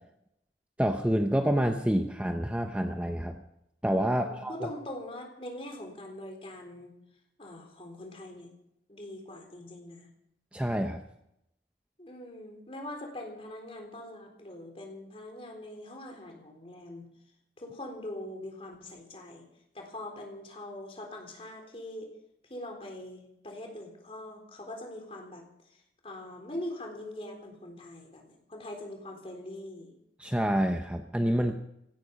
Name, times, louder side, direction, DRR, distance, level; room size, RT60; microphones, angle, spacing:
voice 1, 0.8-3.4 3.8-4.7 10.5-11.0 30.2-31.5, equal, 5° right, 5 dB, 0.8 m, -27 dB
voice 2, 4.1-6.9 7.4-8.5 8.9-10.1 12.0-17.1 17.6-19.4 19.7-22.1 22.5-25.5 25.7-30.0, left 1 dB, 35° left, 3 dB, 3.8 m, -42 dB
17.0 x 15.5 x 5.3 m, 0.79 s
head